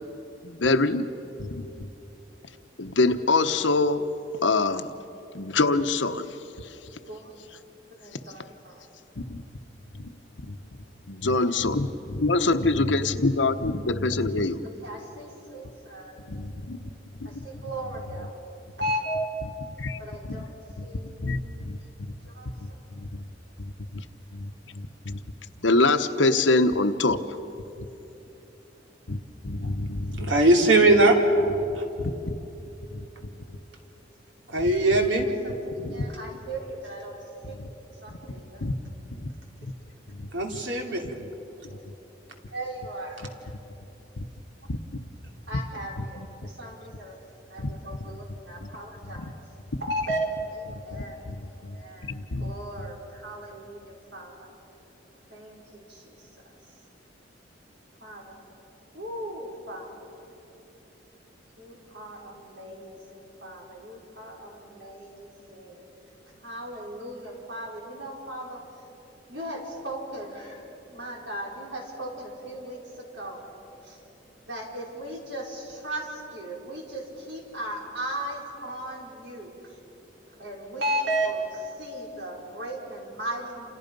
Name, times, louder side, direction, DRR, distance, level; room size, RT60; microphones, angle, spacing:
voice 1, 0.4-1.1 1.4-1.9 2.8-4.1 4.4-4.9 5.3-6.7 9.2-9.4 10.0-10.1 10.4-10.6 11.1-14.6 16.3-16.9 17.2-17.7 18.2-18.3 19.8-20.0 20.3-20.4 20.8-20.9 21.2-21.8 22.6-23.2 23.6-24.0 24.3-25.2 25.6-27.2 29.1-29.2 29.4-30.3 31.6-32.4 32.9-33.1 35.8-36.0 37.4-37.7 38.1-38.2 38.6-38.7 39.2-39.3 39.6-39.7 40.1-40.3 41.2-41.3 41.6-41.8 46.0-46.3 47.6-48.2 48.6-48.7 49.0-49.2 50.9-51.8 52.0-52.5 52.8-52.9, left 3 dB, 85° left, 9 dB, 1.1 m, -26 dB
voice 2, 8.0-8.8 14.8-16.1 17.4-18.3 18.8-19.3 20.0-20.5 20.8-21.3 22.3-22.5 35.4-35.5 35.9-37.2 37.5-37.7 38.0-38.7 41.7-41.8 42.5-43.2 45.5-47.1 47.5-49.3 49.8-51.2 51.7-52.1 52.4-54.5 55.3-55.6 55.9-56.0 58.0-58.4 58.9-59.9 61.6-65.8 66.4-68.6 69.3-70.6 70.9-73.4 73.9-74.0 74.5-79.5 80.4-83.7, right 1 dB, 70° right, -2 dB, 5.2 m, -36 dB
voice 3, 30.2-31.2 31.8-31.9 34.5-35.3 40.3-41.1 43.2-43.3, right 2 dB, 90° right, 2 dB, 2.9 m, -20 dB
28.5 x 28.0 x 5.4 m, 3.0 s
head